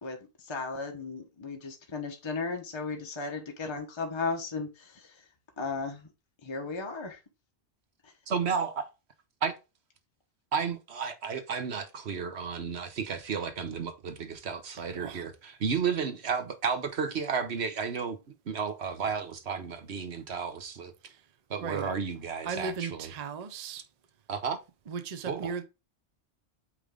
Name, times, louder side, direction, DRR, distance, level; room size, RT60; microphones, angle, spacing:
voice 1, 0.0-5.3 5.6-6.1 6.4-7.2 8.0-8.1, left 4 dB, 25° left, 1.0 m, -35 dB
voice 2, 8.3-8.8 9.4-9.5 10.5-18.2 18.5-20.9 21.5-23.1 24.3-24.6 25.3-25.5, right 6 dB, 65° right, 1.2 m, -32 dB
voice 3, 14.9-15.3 21.0-21.2 21.6-21.9 22.4-23.9 24.9-25.6, right 5 dB, 40° right, 0.7 m, -37 dB
8.5 x 3.3 x 3.7 m
omnidirectional pair, 1.2 m